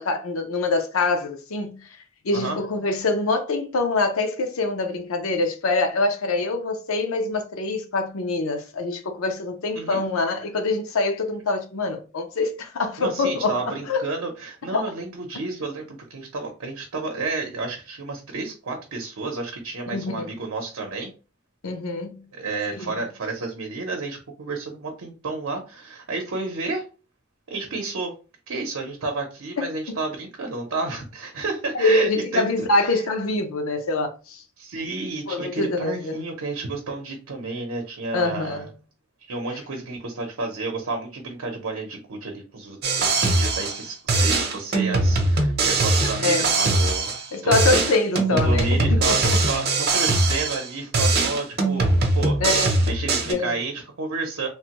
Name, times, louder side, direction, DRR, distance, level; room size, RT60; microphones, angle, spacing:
voice 1, 0.0-1.8 2.2-14.0 14.7-14.9 15.3-15.4 19.9-20.3 21.6-22.2 22.8-22.9 29.6-30.0 31.7-34.4 35.3-36.2 38.1-38.7 46.0-46.5 47.3-49.4 52.4-52.8 53.2-53.6, left 3 dB, 80° left, 0.6 m, -25 dB
voice 2, 13.0-21.1 22.3-26.9 27.5-28.1 28.5-33.0 34.6-38.7 39.2-47.2 47.4-47.6 48.3-52.4 52.9-54.5, right 3 dB, 85° right, 0.7 m, -31 dB
sound 1, 42.8-43.8 44.1-47.3 47.5-50.7 50.9-53.3, right 2 dB, 50° right, 0.7 m, -21 dB
3.2 x 2.1 x 2.9 m
head